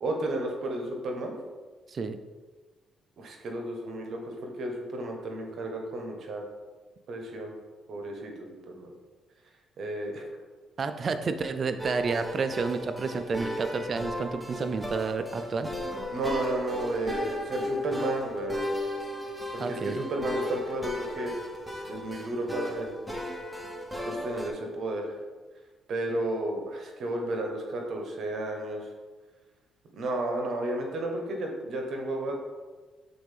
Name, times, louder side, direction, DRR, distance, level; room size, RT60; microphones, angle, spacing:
voice 1, 0.0-1.3 3.2-6.5 7.1-7.5 7.9-8.9 9.8-10.3 16.1-18.7 19.5-21.3 21.9-22.9 24.0-25.1 25.9-28.8 29.9-32.3, right 1 dB, 60° right, 2 dB, 1.1 m, -32 dB
voice 2, 10.8-15.7 19.6-20.0, right 4 dB, 45° right, 9 dB, 0.4 m, -30 dB
sound 1, 11.8-24.5, left 1 dB, ahead, 0.9 m, -36 dB
7.7 x 4.1 x 3.5 m, 1.3 s
cardioid pair, 90°, 0 cm